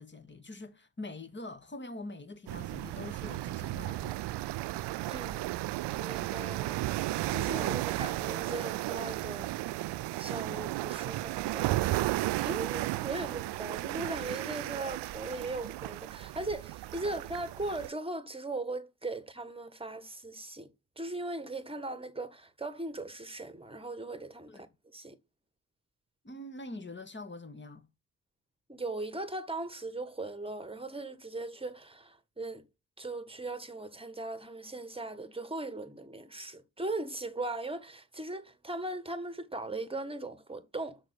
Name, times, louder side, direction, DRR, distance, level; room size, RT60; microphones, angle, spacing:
voice 1, 0.0-4.2 7.6-7.9 13.2-13.4 24.5-24.6 26.2-27.8, left 2 dB, 25° left, 1.7 m, -44 dB
sound 1, 2.5-17.9, right 17 dB, 60° right, 0.5 m, -34 dB
voice 2, 5.1-5.5 6.0-6.8 7.3-9.5 10.2-12.1 12.4-20.7 21.0-25.2 28.7-32.6 33.0-41.0, right 2 dB, 10° right, 1.6 m, -39 dB
6.5 x 4.9 x 6.8 m
hypercardioid pair, 40°, 48 cm